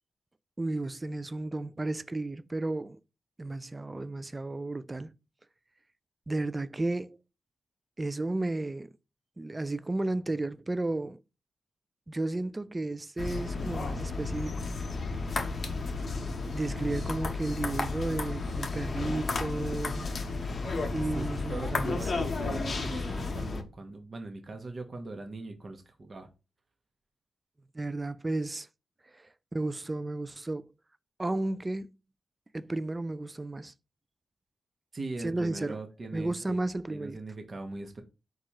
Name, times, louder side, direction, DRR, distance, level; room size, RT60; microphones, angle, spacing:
voice 1, 0.6-3.0 3.4-5.1 6.3-7.2 8.0-8.9 9.4-11.2 12.1-14.5 16.5-20.1 20.9-22.0 27.7-28.7 29.1-29.2 29.5-30.7 31.2-31.9 32.5-33.7 35.2-35.8 36.1-37.2, right 2 dB, 25° right, 0.3 m, -33 dB
sound 1, 13.2-23.6, left 3 dB, 50° left, 0.8 m, -33 dB
voice 2, 21.1-26.3 34.9-36.6 36.9-38.0, right 2 dB, 45° right, 0.8 m, -40 dB
4.1 x 2.4 x 4.6 m
cardioid pair, 60°, 0 cm